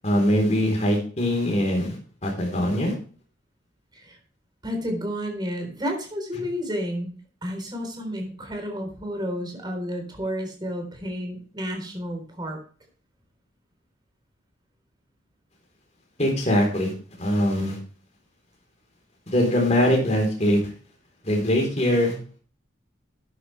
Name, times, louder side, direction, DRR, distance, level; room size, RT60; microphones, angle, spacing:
voice 1, 0.0-2.0 2.2-2.9 16.2-16.9 17.2-17.8 19.3-20.6 21.2-22.1, left 1 dB, 35° left, 0 dB, 3.9 m, -22 dB
voice 2, 4.6-7.1 7.4-12.6, equal, 20° right, 3 dB, 4.0 m, -31 dB
13.0 x 9.9 x 3.4 m, 0.40 s
head